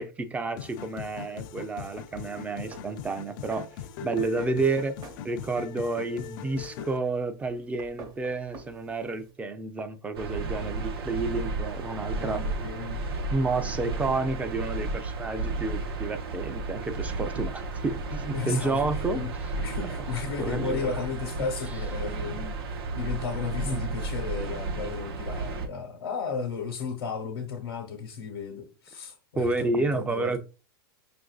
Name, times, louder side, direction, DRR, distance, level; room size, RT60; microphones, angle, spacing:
voice 1, 0.0-5.0 5.2-12.5 13.3-19.5 20.4-21.1 23.6-24.0 29.4-30.4, right 3 dB, 10° right, 0.4 m, -30 dB
sound 1, 0.6-7.0, left 9 dB, 55° left, 0.4 m, -40 dB
sound 2, 0.9-9.3, right 3 dB, 30° right, 0.8 m, -51 dB
sound 3, 10.1-25.7, right 3 dB, 80° right, 0.8 m, -33 dB
voice 2, 12.1-13.0 18.3-18.8 19.1-19.3 19.6-30.4, left 5 dB, 90° left, 1.0 m, -34 dB
5.7 x 2.6 x 2.3 m
hypercardioid pair, 125°, 13 cm